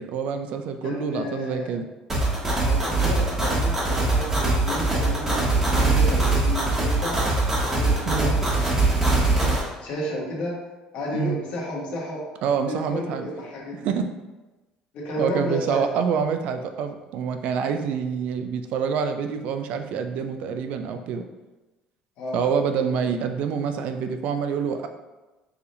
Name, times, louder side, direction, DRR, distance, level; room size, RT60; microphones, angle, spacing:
voice 1, 0.0-1.9 3.2-3.3 8.1-8.3 11.1-11.4 12.4-13.3 13.8-14.1 15.2-21.2 22.3-24.9, right 6 dB, 70° right, 7 dB, 0.4 m, -26 dB
voice 2, 0.8-1.7 2.6-7.2 7.7-10.6 10.9-12.2 12.7-13.9 14.9-15.8 22.2-22.4, left 1 dB, 65° left, -4 dB, 1.4 m, -32 dB
sound 1, 2.1-9.6, right 2 dB, 15° right, 1.3 m, -22 dB
4.7 x 3.3 x 2.7 m, 1.1 s
cardioid pair, 115°, 2 cm